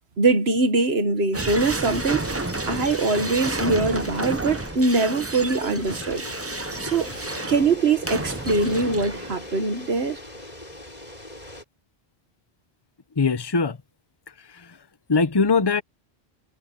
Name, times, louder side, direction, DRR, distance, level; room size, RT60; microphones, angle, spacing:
voice 1, 0.2-2.2 2.7-6.3 6.8-7.1 7.5-10.2, right 3 dB, 75° right, 1.9 m, -22 dB
sound 1, 1.3-9.5, right 2 dB, 15° right, 0.7 m, -31 dB
sound 2, 1.4-11.6, left 1 dB, 40° left, 5.2 m, -39 dB
voice 2, 13.2-13.8 14.5-14.7 15.1-15.8, left 4 dB, 25° left, 0.9 m, -21 dB
omnidirectional pair, 1.1 m